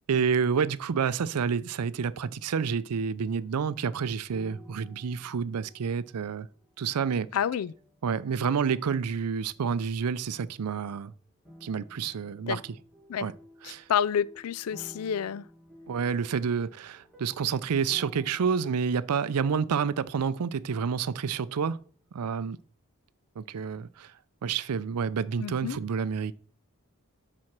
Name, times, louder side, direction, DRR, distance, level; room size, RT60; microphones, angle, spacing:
voice 1, 0.1-6.5 6.8-7.3 8.0-11.1 11.6-12.7 13.2-13.3 13.6-13.8 15.9-21.8 22.1-22.6 23.4-24.1 24.4-26.3, right 6 dB, 90° right, 0.5 m, -29 dB
sound 1, 3.2-9.8 10.1-10.9 11.4-22.1 22.5-22.6, equal, ahead, 1.7 m, -55 dB
voice 2, 7.3-7.7 12.5-12.6 13.1-13.3 13.6-15.4 25.4-25.8, left 8 dB, 75° left, 0.4 m, -29 dB
7.6 x 4.2 x 5.9 m
head